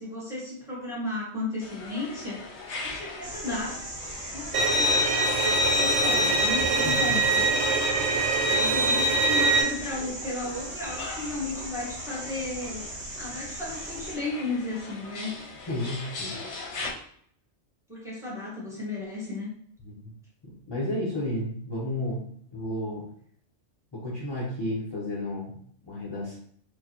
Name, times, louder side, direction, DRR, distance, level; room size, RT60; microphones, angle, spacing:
voice 1, 0.0-2.4 2.8-3.7 4.3-7.5 8.5-12.9 13.2-15.4 17.9-19.5, left 2 dB, 5° right, -6 dB, 1.2 m, -34 dB
sound 1, 1.6-16.9, left 3 dB, 75° left, 0.9 m, -41 dB
sound 2, 3.2-14.2, right 2 dB, 50° right, 0.9 m, -39 dB
Bowed string instrument, 4.5-9.6, right 2 dB, 75° right, 0.9 m, -23 dB
voice 2, 6.8-7.2 15.7-16.4 19.8-20.1 20.4-23.1 23.9-25.6 25.8-26.4, left 1 dB, 25° left, -7 dB, 0.7 m, -32 dB
4.6 x 2.2 x 2.8 m, 0.62 s
omnidirectional pair, 1.2 m